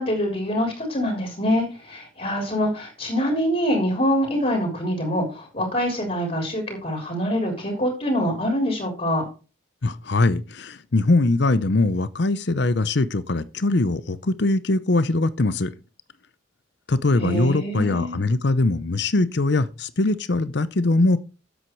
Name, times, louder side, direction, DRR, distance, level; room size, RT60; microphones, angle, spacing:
voice 1, 0.0-9.2 17.2-18.1, equal, 35° left, 3.6 m, -25 dB
voice 2, 9.8-15.7 16.9-21.2, left 2 dB, 55° left, 0.7 m, -21 dB
8.9 x 8.0 x 4.6 m
head